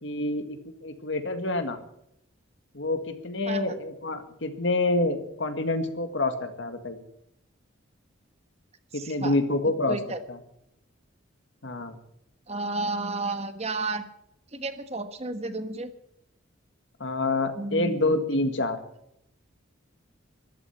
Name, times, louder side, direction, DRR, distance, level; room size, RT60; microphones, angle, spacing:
voice 1, 0.0-1.8 2.7-7.0 8.9-10.0 10.3-10.4 11.6-12.0 17.0-18.8, left 2 dB, 65° left, 8 dB, 1.9 m, -27 dB
voice 2, 8.9-9.4 9.9-10.2 12.5-14.1 14.5-15.9 17.6-18.0, right 3 dB, 30° right, 9 dB, 1.3 m, -32 dB
14.0 x 12.0 x 8.3 m, 0.77 s
head